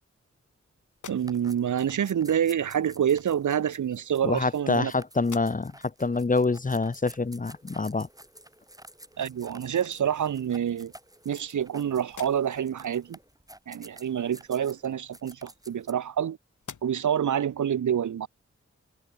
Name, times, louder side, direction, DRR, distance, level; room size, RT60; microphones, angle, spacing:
sound 1, 0.9-1.7 2.9-3.0 4.0-4.8 5.2-5.9 6.4-6.5 9.2-9.3 9.7-10.4 11.0-11.7 12.0-12.8 14.8-16.2 16.6-17.2, left 6 dB, 85° left, 3.6 m, -49 dB
sound 2, 1.1-15.9, right 1 dB, 10° right, 4.8 m, -51 dB
voice 1, 1.1-4.9 9.2-10.9 11.2-13.2 13.7-16.4 16.8-18.3, right 9 dB, 90° right, 0.9 m, -27 dB
voice 2, 4.2-5.7 6.0-8.1, left 3 dB, 25° left, 0.8 m, -26 dB
cardioid pair, 45°, 29 cm